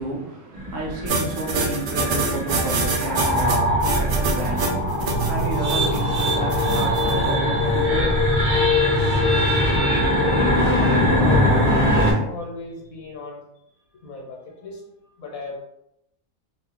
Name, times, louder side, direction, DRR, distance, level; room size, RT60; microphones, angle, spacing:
voice 1, 0.0-8.6, right 1 dB, 70° right, -2 dB, 1.2 m, -32 dB
sound 1, 0.5-12.1, left 1 dB, 40° right, 0.9 m, -21 dB
sound 2, 1.1-7.1, right 3 dB, 85° right, 0.4 m, -26 dB
voice 2, 4.7-5.1 8.5-8.7 10.1-13.4 14.0-14.8 15.2-15.6, left 3 dB, 80° left, 0 dB, 1.3 m, -35 dB
sound 3, 5.1-13.1, right 8 dB, 60° left, 1.1 m, -36 dB
2.9 x 2.5 x 3.5 m, 0.78 s
omnidirectional pair, 1.5 m